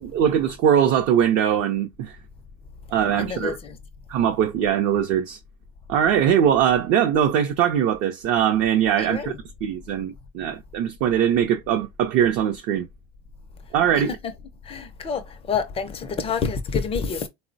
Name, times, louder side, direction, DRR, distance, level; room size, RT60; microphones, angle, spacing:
voice 1, 0.0-2.2 2.9-3.6 4.1-5.4 5.9-9.3 9.6-12.9 13.7-14.1, right 9 dB, 45° right, 0.4 m, -21 dB
voice 2, 3.2-3.8 9.0-9.4 13.9-14.3 14.6-17.3, left 6 dB, 20° left, 0.3 m, -28 dB
3.7 x 2.0 x 2.5 m
cardioid pair, 145°, 32 cm